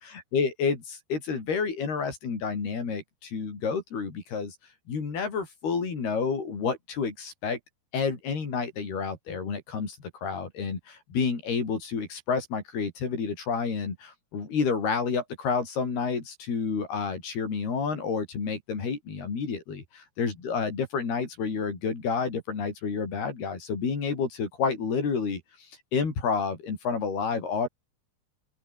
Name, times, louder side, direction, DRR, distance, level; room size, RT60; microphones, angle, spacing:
voice 1, 0.3-4.6 4.9-7.6 7.9-25.4 25.9-27.7, left 5 dB, 70° left, 7.4 m, -29 dB
open air
omnidirectional pair, 4.6 m